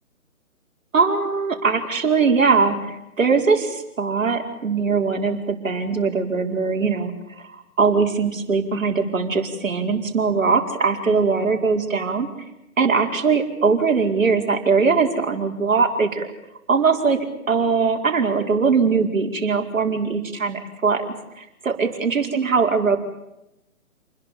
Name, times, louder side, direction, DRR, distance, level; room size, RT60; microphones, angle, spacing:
voice 1, 0.9-12.3 12.8-16.3 16.7-17.2 17.5-21.1 21.4-23.0, right 5 dB, 65° right, 4 dB, 5.2 m, -21 dB
29.5 x 21.5 x 7.1 m, 0.89 s
figure-of-eight pair, 150°, 42 cm